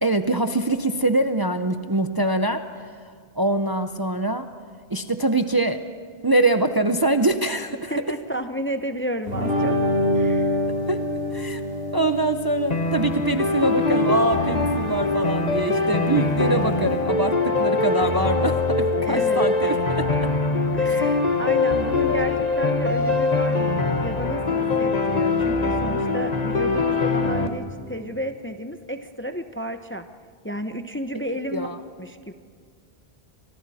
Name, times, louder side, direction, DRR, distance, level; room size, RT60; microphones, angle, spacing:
voice 1, 0.0-4.5 4.9-5.8 6.2-7.9 10.9-11.0 11.3-11.6 11.9-20.3 22.1-22.5 31.5-31.8, right 2 dB, 25° right, 8 dB, 0.6 m, -24 dB
voice 2, 7.9-9.8 10.1-10.6 19.0-19.4 20.7-30.0 30.4-31.7 32.0-32.3, right 1 dB, 15° left, 8 dB, 0.7 m, -32 dB
sound 1, 9.3-17.0, left 1 dB, 80° right, 5.1 m, -27 dB
sound 2, 12.7-27.5, left 3 dB, 40° left, 1.5 m, -22 dB
29.5 x 25.5 x 4.2 m, 2.1 s
omnidirectional pair, 1.0 m